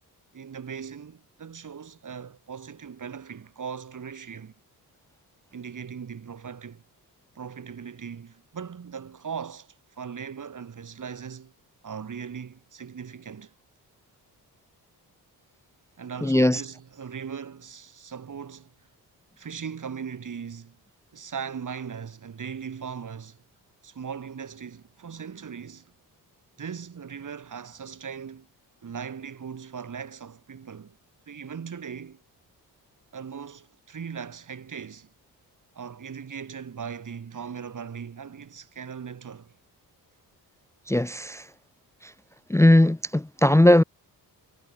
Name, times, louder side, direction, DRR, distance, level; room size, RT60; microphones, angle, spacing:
voice 1, 0.3-4.5 5.5-6.8 7.4-11.5 11.8-13.5 16.0-18.7 19.4-20.8 21.1-23.4 23.8-25.9 26.6-28.5 28.8-31.0 31.3-32.2 33.1-35.1 35.8-39.6, right 7 dB, 45° right, 2.0 m, -39 dB
voice 2, 16.2-16.6 40.9-41.5 42.0-42.1 42.5-43.8, left 1 dB, 5° left, 0.7 m, -19 dB
cardioid pair, 70°, 41 cm